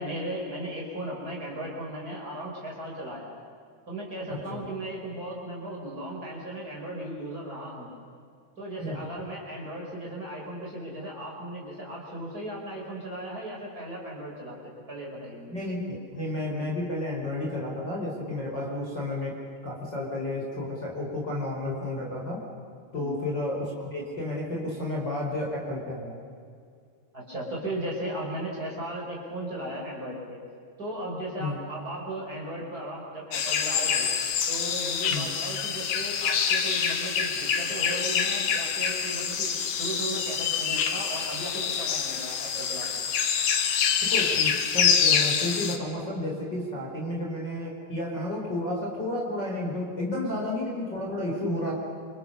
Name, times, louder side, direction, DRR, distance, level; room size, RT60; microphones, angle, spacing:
voice 1, 0.0-3.4 3.9-7.9 8.6-15.6 18.5-18.6 22.9-23.2 27.1-30.4 30.8-34.1 34.5-43.0 46.9-47.0 51.0-51.1, right 1 dB, 20° right, -3 dB, 5.7 m, -36 dB
voice 2, 4.3-4.6 8.8-9.0 15.5-19.4 19.6-22.4 22.9-26.2 31.4-31.6 35.1-35.3 44.0-51.8, left 1 dB, 25° left, -2 dB, 5.1 m, -31 dB
sound 1, 33.3-45.8, left 7 dB, 75° left, 3.6 m, -26 dB
28.5 x 28.0 x 6.9 m, 2.3 s
omnidirectional pair, 4.6 m